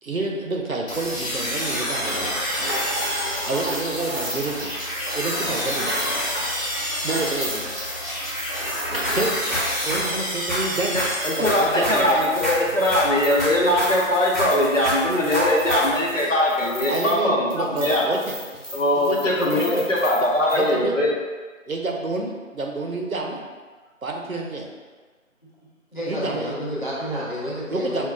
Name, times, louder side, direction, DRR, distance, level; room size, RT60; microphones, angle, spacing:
voice 1, 0.0-2.3 3.4-4.7 5.1-5.9 6.8-7.7 9.1-9.4 9.8-11.0 11.2-12.2 16.9-18.4 18.9-19.9 20.5-20.9 21.7-23.4 24.0-24.7 26.0-26.5 27.7-28.1, right 3 dB, 85° right, 1 dB, 0.8 m, -28 dB
sound 1, 0.9-12.0, equal, 85° left, 1.4 m, -28 dB
sound 2, 2.1-17.2 17.5-20.7, equal, 45° right, 0.7 m, -35 dB
sound 3, 8.8-16.2, equal, ahead, 0.7 m, -29 dB
voice 2, 10.9-18.0 18.7-21.1, left 1 dB, 65° left, -5 dB, 1.1 m, -21 dB
voice 3, 25.9-28.1, equal, 35° left, -8 dB, 0.9 m, -29 dB
5.6 x 2.4 x 2.4 m, 1.4 s
figure-of-eight pair, 175°, 41 cm